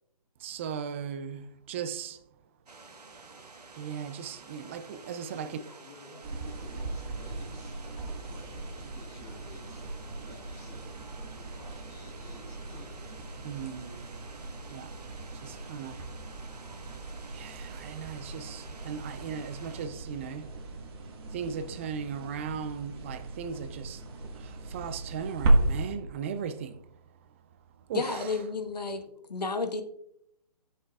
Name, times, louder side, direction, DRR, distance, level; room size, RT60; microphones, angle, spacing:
voice 1, 0.4-2.2 3.8-5.6 13.4-14.1 14.7-15.0 15.3-16.0 17.3-20.5 21.3-24.0 24.3-26.9 27.9-28.4, right 7 dB, 20° right, 0.4 m, -37 dB
sound 1, 2.7-19.9, right 3 dB, 80° right, 1.3 m, -51 dB
voice 2, 5.3-9.8 10.2-10.9 11.6-13.0 29.1-29.2, left 3 dB, 20° left, 2.7 m, -52 dB
sound 2, 6.2-25.9, right 2 dB, 40° right, 1.7 m, -35 dB
voice 3, 27.9-29.0 29.3-29.8, left 4 dB, 85° left, 1.2 m, -31 dB
14.0 x 6.7 x 2.4 m
figure-of-eight pair, 145°, 20 cm